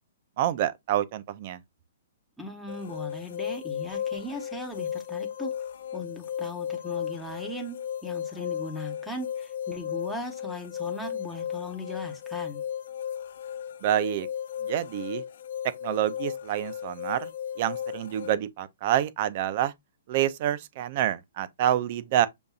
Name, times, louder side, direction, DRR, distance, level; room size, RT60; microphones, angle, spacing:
voice 1, 0.4-1.6 13.8-14.3 14.6-15.2 15.8-17.3 17.6-19.7 20.1-22.3, right 11 dB, 40° right, 0.5 m, -27 dB
voice 2, 2.4-5.7 5.9-12.6, left 1 dB, ahead, 1.0 m, -38 dB
sound 1, 2.7-18.3, left 9 dB, 65° left, 0.6 m, -35 dB
6.9 x 2.6 x 2.4 m
hypercardioid pair, 160°, 0 cm